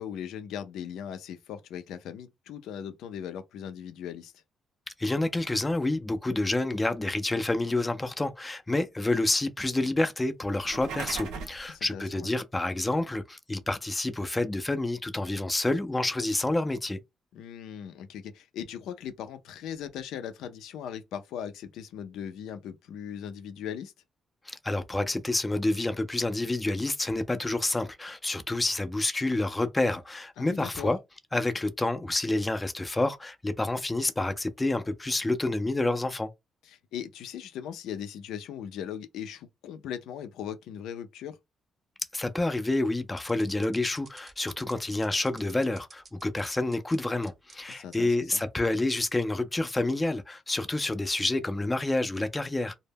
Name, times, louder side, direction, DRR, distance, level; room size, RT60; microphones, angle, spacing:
voice 1, 0.0-4.4 11.7-12.3 17.3-23.9 30.4-30.9 36.6-41.4 47.7-48.2, left 9 dB, 85° left, 0.4 m, -39 dB
voice 2, 5.0-17.0 24.5-31.0 31.3-36.3 42.1-52.7, left 2 dB, 15° left, 0.4 m, -28 dB
sound 1, 10.5-11.7, right 5 dB, 85° right, 0.5 m, -37 dB
sound 2, 43.2-47.0 47.2-48.0 48.4-48.5 49.2-49.4, right 4 dB, 40° right, 0.6 m, -51 dB
2.1 x 2.0 x 3.3 m
cardioid pair, 90°, 0 cm